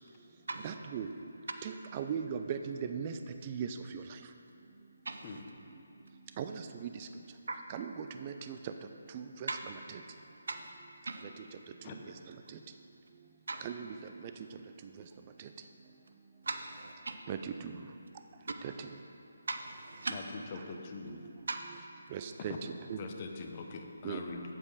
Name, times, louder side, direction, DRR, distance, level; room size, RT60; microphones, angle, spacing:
voice 1, 0.6-1.1 1.6-3.1 3.5-3.7 6.4-7.1 7.7-8.7 9.1-10.0 13.6-14.0 17.3-17.8 18.6-18.7 22.1-23.0 24.0-24.2, right 7 dB, 30° right, 7 dB, 0.4 m, -38 dB
voice 2, 5.1-5.4 7.5-7.6 9.5-9.6 10.5-10.7 11.1-11.2 13.5-13.6 16.5-17.1 19.5-20.1 21.5-21.6, right 3 dB, 70° right, 6 dB, 0.7 m, -38 dB
voice 3, 20.1-21.2 22.4-22.5 23.0-24.4, left 4 dB, 35° left, 3 dB, 0.8 m, -43 dB
8.5 x 7.4 x 4.9 m, 2.7 s
figure-of-eight pair, 155°, 0 cm